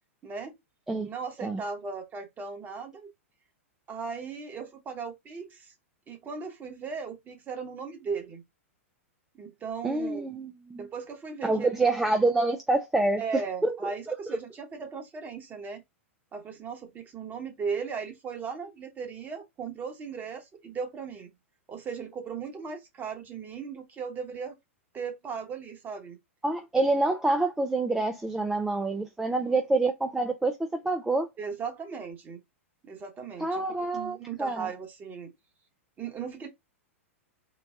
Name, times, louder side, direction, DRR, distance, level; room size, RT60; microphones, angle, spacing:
voice 1, 0.2-0.5 1.0-3.1 3.9-5.7 6.1-8.4 9.3-10.3 10.8-11.7 13.2-15.8 16.3-21.3 21.7-24.6 24.9-26.2 31.4-32.4 32.8-35.3 36.0-36.5, right 5 dB, 25° right, 1.2 m, -37 dB
voice 2, 9.8-10.9 11.4-13.9 26.4-31.3 33.4-34.7, right 2 dB, 5° right, 0.4 m, -27 dB
4.0 x 2.2 x 3.5 m
hypercardioid pair, 105°, 7 cm